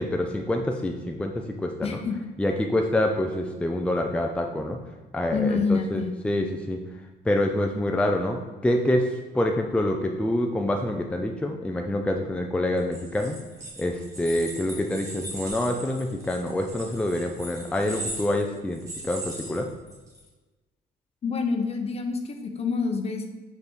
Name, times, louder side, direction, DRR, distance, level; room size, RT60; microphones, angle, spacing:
voice 1, 0.0-2.0 2.4-4.8 5.1-6.8 7.3-13.4 13.8-19.7, left 1 dB, 5° left, 3 dB, 0.5 m, -26 dB
voice 2, 1.8-2.3 5.3-6.1 21.2-23.3, left 4 dB, 35° left, 6 dB, 0.8 m, -27 dB
sound 1, 12.8-20.2, right 1 dB, 20° right, 2.0 m, -39 dB
5.3 x 4.1 x 4.6 m, 1.2 s
cardioid pair, 110°, 17 cm